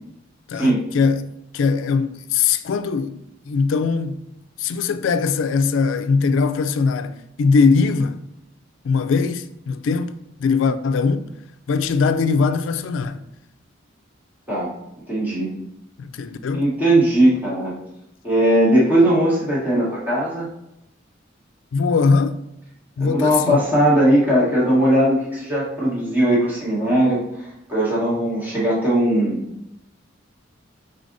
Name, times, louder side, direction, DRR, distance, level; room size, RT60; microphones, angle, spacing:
voice 1, 0.5-1.3 1.5-4.2 4.6-8.2 8.8-10.1 10.4-11.3 11.7-13.3 16.0-16.6 21.7-22.4 23.0-23.6, left 5 dB, 75° left, 0.3 m, -20 dB
voice 2, 15.1-15.5 16.5-17.7 18.2-20.5 23.0-29.4, right 1 dB, 10° right, 1.2 m, -19 dB
4.9 x 4.0 x 2.6 m
head